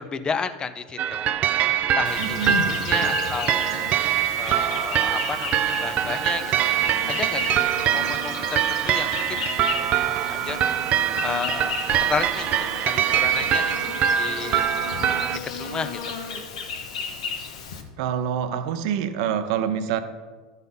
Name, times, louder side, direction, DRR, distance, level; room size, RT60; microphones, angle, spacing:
voice 1, 0.0-1.3 2.0-3.7 4.4-6.5 7.1-7.6 7.9-9.4 9.8-9.9 10.3-10.6 11.2-12.5 12.8-13.7 14.2-14.6 15.6-16.0, left 5 dB, 25° left, 11 dB, 0.6 m, -32 dB
sound 1, 1.0-15.4, right 10 dB, 45° right, 0.4 m, -24 dB
Insect, 2.0-17.8, left 5 dB, 85° left, 1.1 m, -33 dB
voice 2, 2.2-2.8 18.0-20.0, right 9 dB, 70° right, 10 dB, 0.7 m, -26 dB
11.5 x 4.1 x 5.5 m, 1.4 s
hypercardioid pair, 100°, 3 cm